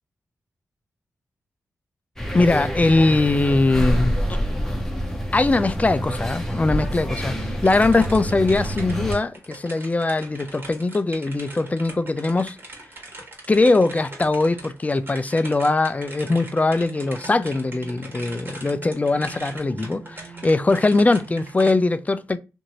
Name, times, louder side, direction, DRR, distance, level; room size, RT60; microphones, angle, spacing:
sound 1, 2.2-9.1, equal, 5° left, 0.8 m, -27 dB
voice 1, 2.3-4.2 5.3-12.6 13.5-22.4, left 2 dB, 25° left, 0.4 m, -21 dB
sound 2, 7.6-21.7, right 1 dB, 40° right, 1.4 m, -41 dB
sound 3, 16.2-21.8, right 5 dB, 80° right, 0.7 m, -44 dB
2.6 x 2.6 x 2.9 m
cardioid pair, 45°, 6 cm